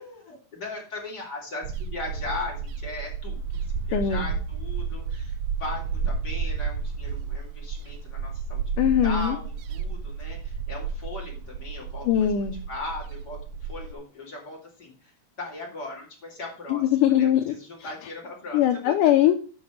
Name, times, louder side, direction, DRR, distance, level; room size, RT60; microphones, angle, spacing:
voice 1, 0.0-3.4 3.9-12.3 12.7-13.4 13.7-15.1 15.4-16.8 17.2-19.0, left 2 dB, 30° left, -2 dB, 3.6 m, -38 dB
sound 1, 1.6-13.9, right 5 dB, 75° right, 2.1 m, -32 dB
voice 2, 3.9-4.3 8.8-9.4 12.1-12.6 16.7-17.5 18.5-19.3, left 11 dB, 75° left, 5 dB, 2.3 m, -21 dB
9.2 x 5.8 x 6.4 m, 0.37 s
omnidirectional pair, 4.0 m